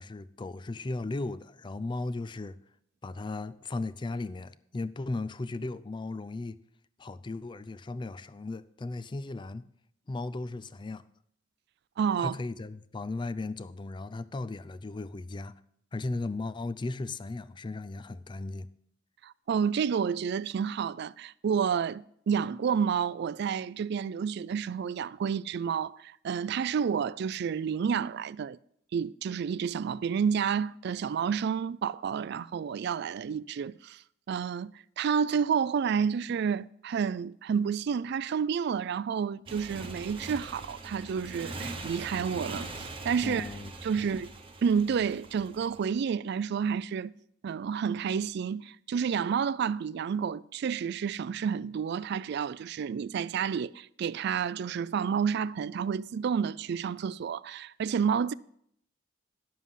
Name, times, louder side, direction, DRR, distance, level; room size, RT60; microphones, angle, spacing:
voice 1, 0.0-2.6 3.0-6.6 7.0-9.7 10.1-11.0 12.2-15.6 15.9-18.7 43.2-43.7 44.0-44.1, left 2 dB, 25° left, 0.4 m, -36 dB
voice 2, 12.0-12.3 19.2-28.6 28.9-34.0 34.3-43.5 43.8-44.3 44.6-47.1 47.4-58.3, right 7 dB, 55° right, 0.3 m, -30 dB
Motorcycle, 39.5-45.8, right 2 dB, 30° right, 1.1 m, -42 dB
11.0 x 7.3 x 5.6 m
head